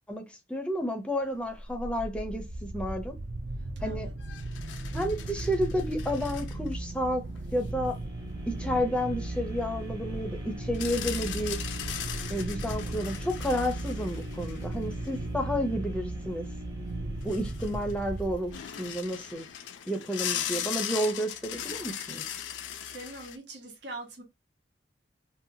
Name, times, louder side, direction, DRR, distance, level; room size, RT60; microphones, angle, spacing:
voice 1, 0.1-3.1 3.8-4.1 4.9-7.2 7.5-8.0 8.5-11.6 12.3-16.5 17.2-18.5 18.8-19.5 19.9-22.3, equal, 5° left, 0.5 m, -31 dB
sound 1, 1.5-18.8, right 2 dB, 45° right, 0.4 m, -36 dB
voice 2, 3.8-4.1 22.9-24.2, right 2 dB, 70° right, 0.9 m, -42 dB
sound 2, 4.2-6.7 7.4-7.5 10.7-15.1 16.7-16.8 17.0-18.1 18.5-23.4, left 10 dB, 85° left, 0.4 m, -38 dB
sound 3, 7.4-19.5 20.0-20.1, left 6 dB, 20° right, 0.9 m, -49 dB
2.7 x 2.2 x 2.7 m
head